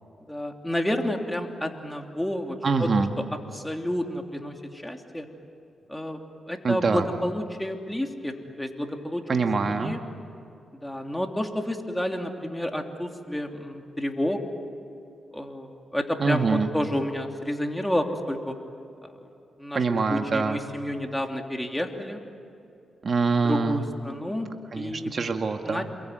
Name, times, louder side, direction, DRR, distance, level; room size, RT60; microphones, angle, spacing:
voice 1, 0.3-3.2 3.5-5.3 5.9-6.2 6.5-9.2 9.6-10.0 10.7-14.4 15.3-18.5 19.0-19.2 19.6-22.2 23.4-24.5 24.7-25.2 25.6-25.9, left 1 dB, 5° left, 3 dB, 3.1 m, -30 dB
voice 2, 2.6-3.1 6.6-7.0 9.3-9.9 16.2-16.7 19.8-20.6 23.0-23.8 24.7-25.8, right 4 dB, 50° right, 5 dB, 1.9 m, -24 dB
27.5 x 23.0 x 9.4 m, 2.6 s
cardioid pair, 70°, 0 cm